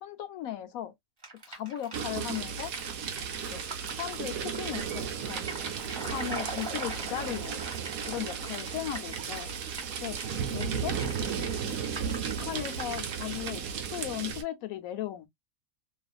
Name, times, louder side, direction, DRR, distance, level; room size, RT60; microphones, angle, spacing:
voice 1, 0.0-0.9 1.5-2.7 3.5-3.7 3.9-5.5 6.0-7.6 8.1-9.5 10.0-10.2 10.5-11.0 11.6-11.8 12.4-13.6 13.9-15.3, left 12 dB, 85° left, 1.1 m, -37 dB
sound 1, 1.2-13.5, right 2 dB, 20° right, 0.9 m, -43 dB
sound 2, 1.9-14.4, right 7 dB, 90° right, 1.1 m, -35 dB
sound 3, 3.8-4.0 4.6-5.3 6.1-6.7 8.2-8.6 9.1-10.1 10.6-11.0, right 5 dB, 45° right, 0.8 m, -49 dB
2.7 x 2.4 x 2.3 m
omnidirectional pair, 1.4 m